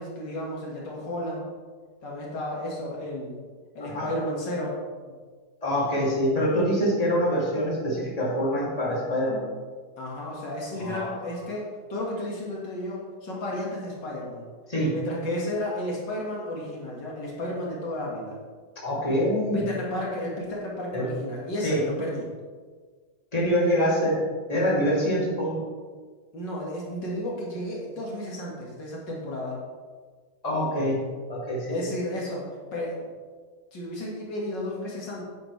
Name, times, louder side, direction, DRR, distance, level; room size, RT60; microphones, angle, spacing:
voice 1, 0.0-1.5 2.0-3.4 3.7-4.8 5.1-5.2 10.0-14.5 14.9-18.4 19.5-22.3 26.3-29.6 31.7-33.1 33.7-35.3, left 1 dB, 75° left, -3 dB, 2.4 m, -33 dB
voice 2, 3.8-4.1 5.6-9.5 10.8-11.2 14.7-15.0 18.8-19.6 20.9-21.1 21.6-21.8 23.3-24.2 24.5-25.6 30.4-31.0 31.3-31.9, equal, 20° left, -6 dB, 2.6 m, -25 dB
9.9 x 9.4 x 3.3 m, 1.5 s
omnidirectional pair, 2.0 m